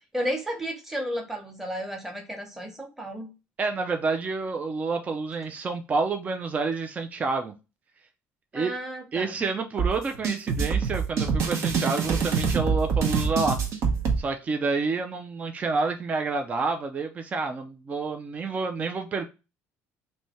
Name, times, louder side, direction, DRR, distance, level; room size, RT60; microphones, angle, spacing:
voice 1, 0.1-3.3 8.5-9.4, equal, 5° right, 0.9 m, -33 dB
voice 2, 3.6-7.5 8.5-8.7 9.1-13.6 14.2-19.3, right 4 dB, 25° right, 0.4 m, -28 dB
sound 1, 9.8-14.2, right 5 dB, 60° right, 0.9 m, -25 dB
3.1 x 2.7 x 4.2 m
cardioid pair, 130°, 6 cm